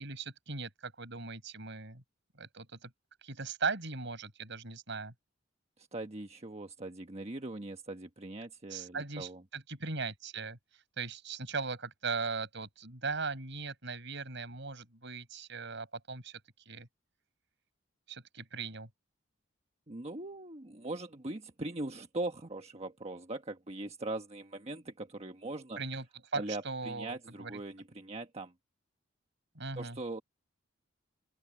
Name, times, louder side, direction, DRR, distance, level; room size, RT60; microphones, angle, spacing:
voice 1, 0.0-2.0 2.4-2.9 3.2-5.1 8.7-16.4 16.7-16.9 18.1-18.9 25.8-26.0 26.3-27.5 29.5-30.0, right 4 dB, 65° right, 6.5 m, -39 dB
voice 2, 5.8-9.4 19.9-25.8 26.3-28.5 29.8-30.2, right 2 dB, 35° right, 1.3 m, -41 dB
open air
head